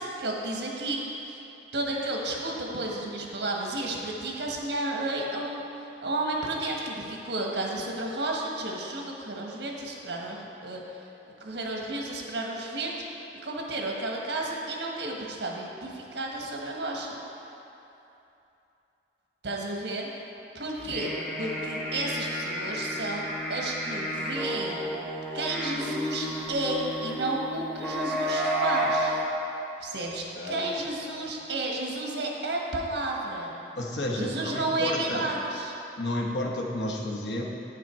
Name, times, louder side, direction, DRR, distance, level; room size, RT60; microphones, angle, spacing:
voice 1, 0.0-1.4 1.7-5.6 6.0-10.8 11.4-17.2 19.4-20.1 20.5-24.8 25.3-29.2 29.8-33.5 34.2-35.7, right 2 dB, 80° right, -1 dB, 1.3 m, -32 dB
sound 1, 20.8-29.3, equal, 5° left, 0.9 m, -31 dB
voice 2, 30.4-30.7 31.0-31.3 33.8-35.3 36.0-37.4, left 1 dB, 90° left, -1 dB, 1.1 m, -31 dB
9.2 x 6.8 x 4.5 m, 2.9 s
head